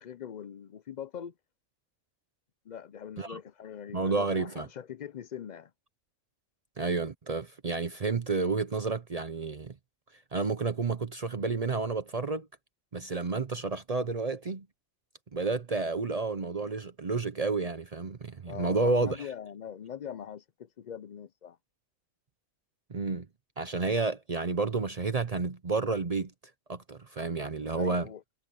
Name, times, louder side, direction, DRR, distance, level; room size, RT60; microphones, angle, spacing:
voice 1, 0.0-1.3 2.7-5.7 18.5-21.6 27.8-28.2, left 8 dB, 65° left, 0.4 m, -42 dB
voice 2, 3.9-4.7 6.8-9.7 10.3-12.5 12.9-14.7 15.3-19.3 22.9-23.3 23.6-26.3 26.7-28.1, right 3 dB, 40° right, 0.6 m, -30 dB
omnidirectional pair, 1.4 m